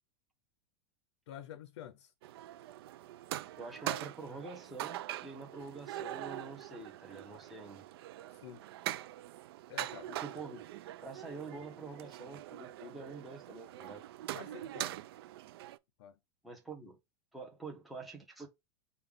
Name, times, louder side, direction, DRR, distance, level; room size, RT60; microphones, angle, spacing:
voice 1, 1.3-2.1 8.4-8.6 9.7-10.1 14.3-14.9 16.0-16.1, left 10 dB, 75° left, 0.6 m, -48 dB
sound 1, 2.2-15.8, right 14 dB, 60° right, 0.4 m, -43 dB
voice 2, 3.6-7.8 10.1-10.6 11.0-14.0 16.4-17.0 17.3-18.5, right 3 dB, ahead, 0.8 m, -46 dB
5.3 x 2.3 x 3.5 m
supercardioid pair, 175°, 14 cm